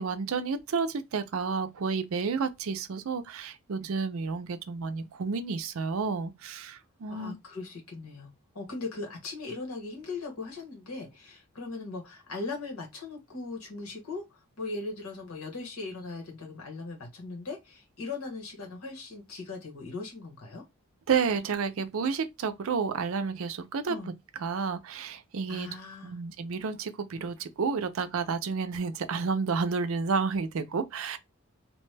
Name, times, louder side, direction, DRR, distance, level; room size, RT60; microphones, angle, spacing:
voice 1, 0.0-7.3 21.1-24.0 24.4-25.7 26.0-31.2, right 5 dB, 75° right, 0.5 m, -31 dB
voice 2, 7.1-20.6 23.9-24.1 25.5-26.2, left 3 dB, 85° left, 1.2 m, -39 dB
2.8 x 2.2 x 3.2 m
head